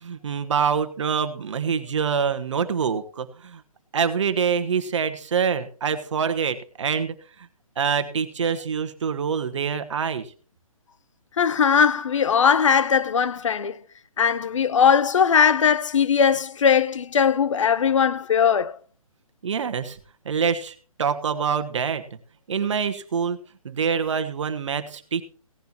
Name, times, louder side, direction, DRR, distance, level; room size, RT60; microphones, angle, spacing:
voice 1, 0.0-3.6 3.9-7.1 7.8-10.3 19.4-20.0 20.2-22.0 22.5-23.4 23.6-25.2, right 6 dB, 55° right, 1.3 m, -25 dB
voice 2, 11.4-13.8 14.2-18.8, left 7 dB, 60° left, 0.7 m, -19 dB
17.0 x 10.5 x 2.9 m
figure-of-eight pair, 145°, 19 cm